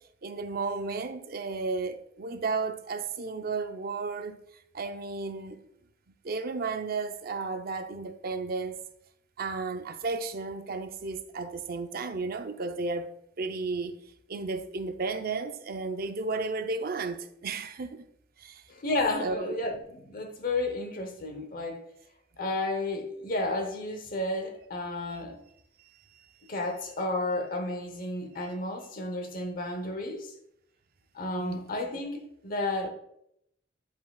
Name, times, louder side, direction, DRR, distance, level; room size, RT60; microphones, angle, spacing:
voice 1, 0.2-4.4 4.7-5.6 6.2-8.8 9.4-14.0 14.3-18.1 18.4-18.6 19.2-19.6 25.8-26.0 31.3-31.6, right 3 dB, 50° right, 0.6 m, -33 dB
voice 2, 18.7-21.8 22.4-25.4 26.5-30.3 31.1-32.9, left 2 dB, 50° left, 0.9 m, -32 dB
9.8 x 5.6 x 2.3 m
head